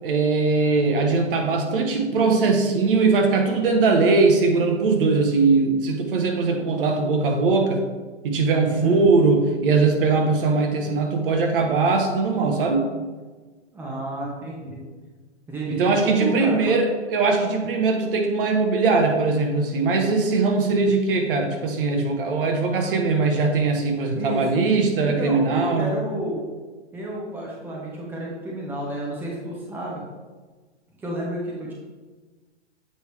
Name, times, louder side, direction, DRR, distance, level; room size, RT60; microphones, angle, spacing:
voice 1, 0.0-7.8 8.2-12.9 15.7-25.9, right 3 dB, 50° right, 3 dB, 1.1 m, -20 dB
voice 2, 8.7-9.0 13.7-14.8 15.5-16.8 20.7-20.9 24.1-24.5 25.0-26.4 26.9-30.1 31.0-31.7, right 1 dB, 5° right, -3 dB, 1.0 m, -31 dB
7.9 x 4.9 x 3.3 m, 1.3 s
hypercardioid pair, 140°, 35 cm